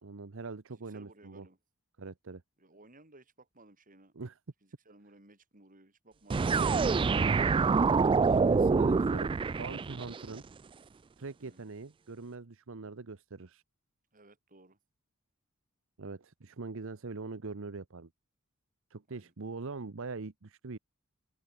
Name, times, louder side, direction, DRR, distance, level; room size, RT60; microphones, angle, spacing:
voice 1, 0.0-1.5 2.0-2.4 4.1-4.4 6.5-7.5 8.3-10.4 11.2-13.6 16.0-18.1 18.9-20.8, right 3 dB, 65° right, 0.9 m, -42 dB
voice 2, 0.9-1.6 2.6-4.1 4.6-6.7 11.4-11.7 14.1-14.8 19.1-19.3, right 2 dB, 40° right, 5.6 m, -58 dB
sound 1, 6.3-10.2, right 4 dB, 25° right, 0.3 m, -26 dB
head